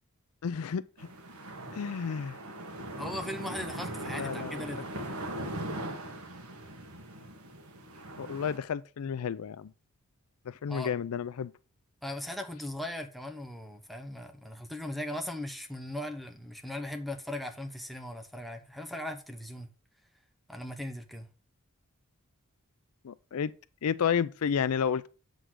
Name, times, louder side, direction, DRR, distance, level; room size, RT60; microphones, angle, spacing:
voice 1, 0.4-1.1 1.7-2.4 4.1-4.6 8.2-9.7 10.4-11.5 23.0-23.5 23.8-25.1, left 7 dB, 80° left, 0.4 m, -31 dB
sound 1, 1.0-8.6, right 1 dB, 75° right, 1.4 m, -40 dB
voice 2, 3.0-4.9 10.7-10.9 12.0-19.7 20.5-21.3, left 1 dB, ahead, 0.8 m, -38 dB
8.0 x 3.9 x 6.2 m
head